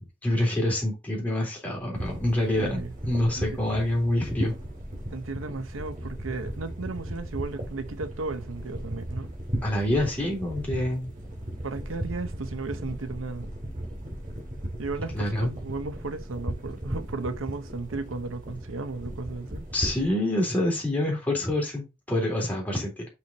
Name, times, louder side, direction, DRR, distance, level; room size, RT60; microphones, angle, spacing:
voice 1, 0.2-4.6 9.6-11.1 15.1-15.5 19.7-23.1, left 1 dB, 10° left, 3.5 m, -26 dB
sound 1, 1.9-20.1, equal, 40° right, 2.5 m, -36 dB
voice 2, 2.6-2.9 3.4-3.6 5.1-9.3 11.6-13.6 14.8-19.7, right 3 dB, 85° right, 0.8 m, -35 dB
6.1 x 5.8 x 4.0 m
head